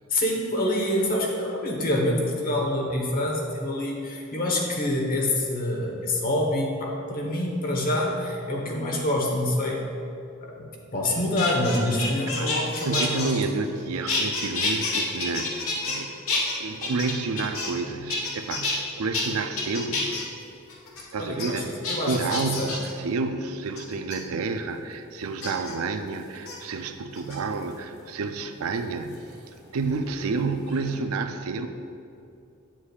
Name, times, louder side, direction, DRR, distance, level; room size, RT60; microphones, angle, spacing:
voice 1, 0.1-9.8 10.4-13.3 21.2-21.6 21.9-22.2 22.6-22.7, left 1 dB, 40° left, 0 dB, 1.1 m, -26 dB
voice 2, 10.9-11.3 12.4-12.6 12.8-20.3 21.1-21.8 22.0-29.3 29.7-31.7, right 4 dB, 90° right, 8 dB, 0.4 m, -30 dB
sound 1, 11.0-13.8 14.1-16.0 16.3-17.8 18.1-18.8 19.1-19.2 19.6-20.2 20.7-21.0 21.4-21.5 21.8-22.9 23.8-24.2 25.4-25.7 26.3-26.6 27.1-27.7 29.1-30.3 30.6-31.0, left 3 dB, 70° left, 1.2 m, -29 dB
8.3 x 7.4 x 2.4 m, 2.6 s
head